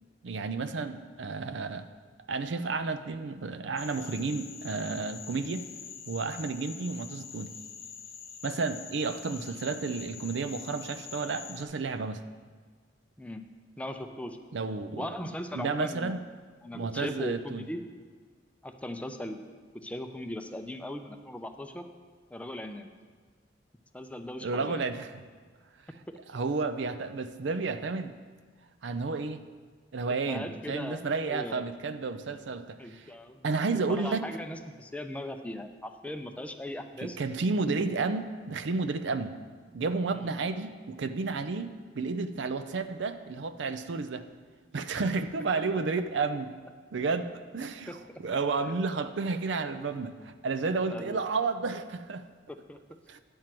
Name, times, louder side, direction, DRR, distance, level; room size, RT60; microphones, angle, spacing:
voice 1, 0.2-1.8 2.3-5.7 6.1-7.5 8.4-12.2 14.5-15.1 15.5-16.2 16.7-17.7 24.4-25.3 26.3-28.2 28.8-29.4 29.9-33.1 33.4-34.3 37.0-39.4 39.7-41.7 41.9-44.3 44.7-46.5 46.9-52.2 53.1-53.2, right 4 dB, 70° right, 10 dB, 0.5 m, -31 dB
sound 1, 3.8-11.6, left 7 dB, 55° left, 0.9 m, -45 dB
voice 2, 13.8-14.4 15.0-16.2 16.6-17.8 18.6-19.4 19.7-21.9 22.3-22.9 23.9-24.8 30.3-31.0 31.3-31.7 32.8-33.6 33.9-37.2 40.1-40.3 47.9-48.0 50.9-51.2 52.5-52.8, left 1 dB, 5° left, 6 dB, 0.4 m, -39 dB
10.0 x 4.5 x 7.5 m, 1.5 s
head